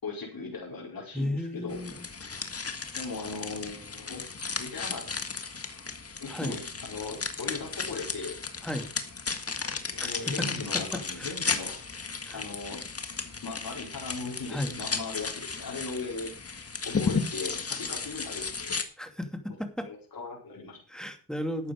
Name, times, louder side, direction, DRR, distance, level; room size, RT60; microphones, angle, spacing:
voice 1, 0.0-1.8 2.9-4.2 4.6-5.1 6.2-8.4 9.9-11.8 12.3-12.9 13.4-18.8 19.8-21.0, left 4 dB, 60° left, -2 dB, 4.6 m, -38 dB
voice 2, 1.1-2.1 6.3-6.6 8.6-8.9 10.0-11.3 12.2-12.4 14.5-14.7 19.0-19.9 20.9-21.7, left 1 dB, ahead, 6 dB, 2.5 m, -34 dB
Crinkling dried flowers, 1.7-18.8, left 4 dB, 35° left, 1.7 m, -34 dB
12.0 x 8.6 x 5.2 m, 0.38 s
cardioid pair, 60°, 40 cm